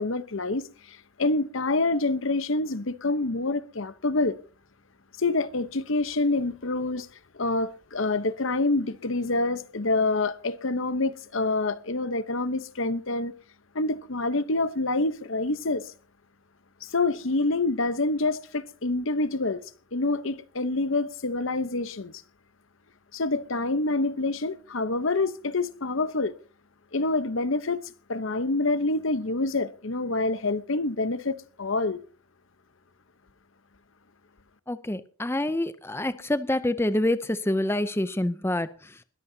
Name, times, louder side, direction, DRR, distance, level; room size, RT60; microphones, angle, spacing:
voice 1, 0.0-4.4 5.2-7.1 7.3-13.3 13.7-15.9 16.8-19.6 19.9-22.2 23.1-26.3 26.9-27.8 28.1-32.0, left 2 dB, 60° left, 0.9 m, -27 dB
voice 2, 34.7-39.0, left 1 dB, 10° left, 0.5 m, -27 dB
21.0 x 14.0 x 2.8 m
head